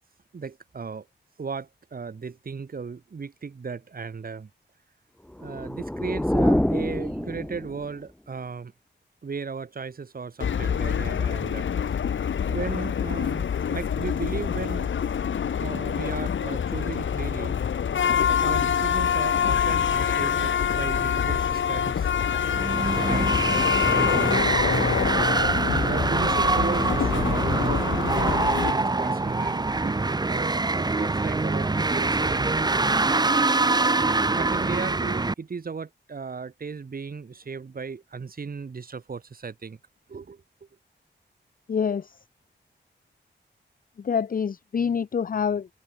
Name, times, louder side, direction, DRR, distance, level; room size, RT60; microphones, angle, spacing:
voice 1, 0.3-1.1 1.4-4.5 5.4-8.7 9.2-11.7 12.5-14.9 15.6-17.6 18.2-22.1 23.0-24.2 25.7-30.0 30.3-32.7 33.6-39.8 40.1-40.4, right 5 dB, 50° right, 4.5 m, -36 dB
sound 1, 5.3-8.0, left 1 dB, 5° left, 0.7 m, -26 dB
sound 2, 10.4-28.7, left 8 dB, 85° left, 1.4 m, -26 dB
sound 3, 22.4-35.3, right 3 dB, 20° right, 1.1 m, -24 dB
voice 2, 41.7-42.1 44.0-45.7, left 6 dB, 50° left, 0.7 m, -26 dB
wide cardioid pair, 155°, 19 cm